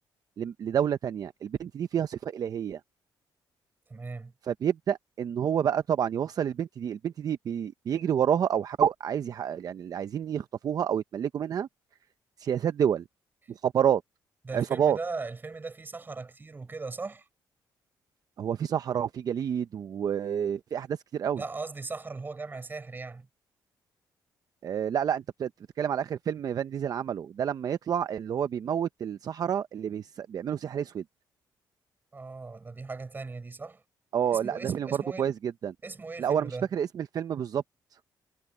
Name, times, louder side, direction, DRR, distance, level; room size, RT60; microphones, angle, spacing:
voice 1, 0.4-2.8 4.5-11.7 12.4-13.0 13.5-14.0 14.5-15.0 18.4-21.4 24.6-25.5 25.8-31.0 34.1-35.7 36.2-37.6, right 8 dB, 50° right, 0.7 m, -29 dB
voice 2, 3.9-4.3 14.5-17.3 21.3-23.3 32.1-33.8 34.3-35.3 35.8-36.7, right 3 dB, 25° right, 6.9 m, -38 dB
cardioid pair, 105°, 8 cm